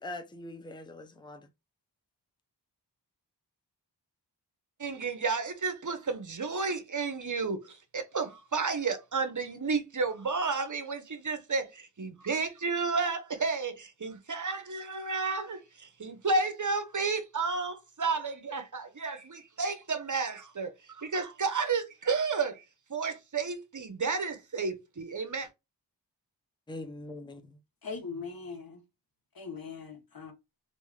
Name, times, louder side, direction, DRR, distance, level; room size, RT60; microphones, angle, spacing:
voice 1, 0.0-1.5 26.7-27.6, left 2 dB, 10° left, 0.5 m, -42 dB
voice 2, 4.8-22.6 22.9-25.5, right 4 dB, 45° right, 0.7 m, -32 dB
voice 3, 27.8-28.8 29.3-30.3, left 5 dB, 55° left, 0.9 m, -40 dB
3.5 x 2.6 x 3.1 m
wide cardioid pair, 65°, 42 cm